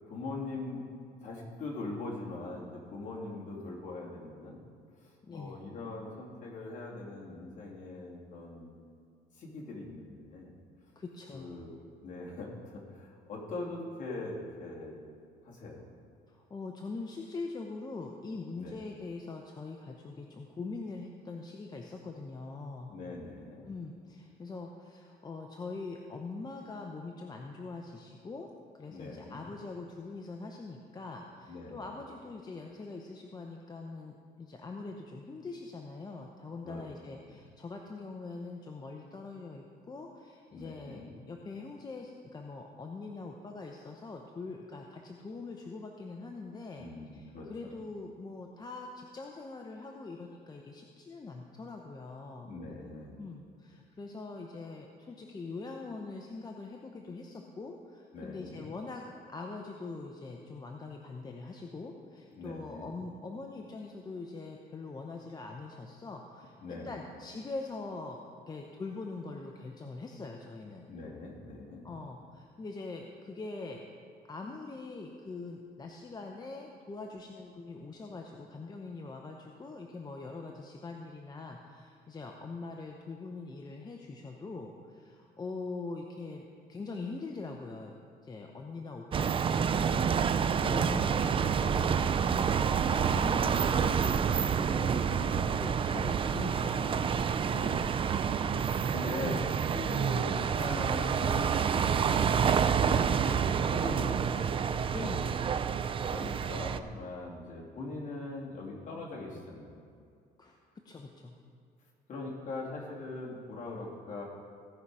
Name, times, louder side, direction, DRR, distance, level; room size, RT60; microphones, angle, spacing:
voice 1, 0.1-0.9 1.2-4.6 5.0-8.7 9.3-10.5 11.3-11.8 12.0-15.0 15.4-15.9 18.6-18.8 22.9-23.7 28.9-29.5 31.5-31.8 36.6-36.8 37.3-37.4 40.5-41.2 46.7-47.8 52.4-53.2 58.1-58.6 62.3-62.9 66.6-66.9 70.9-71.9 90.6-91.1 92.9-93.3 97.5-98.0 98.6-104.6 106.1-109.8 112.1-114.2, left 2 dB, 45° left, -3 dB, 2.7 m, -41 dB
voice 2, 5.2-5.6 11.0-11.6 16.3-22.9 23.6-28.5 28.8-46.9 47.1-52.5 53.2-68.2 68.5-70.9 71.8-73.8 74.2-87.9 88.2-90.2 90.5-97.1 98.4-98.8 104.9-105.5 110.4-110.6 110.8-111.3, left 3 dB, 25° left, 2 dB, 0.8 m, -43 dB
sound 1, 89.1-106.8, right 7 dB, 30° right, 0.4 m, -28 dB
16.5 x 5.6 x 4.8 m, 2.2 s
cardioid pair, 110°, 17 cm